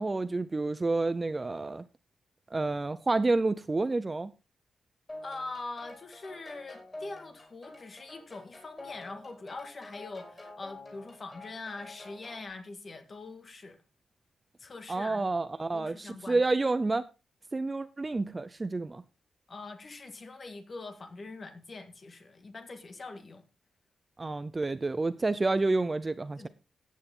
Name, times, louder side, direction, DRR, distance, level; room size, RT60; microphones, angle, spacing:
voice 1, 0.0-1.8 2.5-4.3 14.9-17.1 17.5-19.0 24.2-26.5, right 3 dB, 20° right, 0.5 m, -29 dB
sound 1, 5.1-12.5, left 2 dB, 15° left, 5.6 m, -48 dB
voice 2, 5.2-13.8 14.6-15.3 15.7-16.4 19.5-23.4 26.4-26.5, left 3 dB, 35° left, 1.7 m, -43 dB
14.5 x 9.4 x 3.7 m
wide cardioid pair, 175°, 0 cm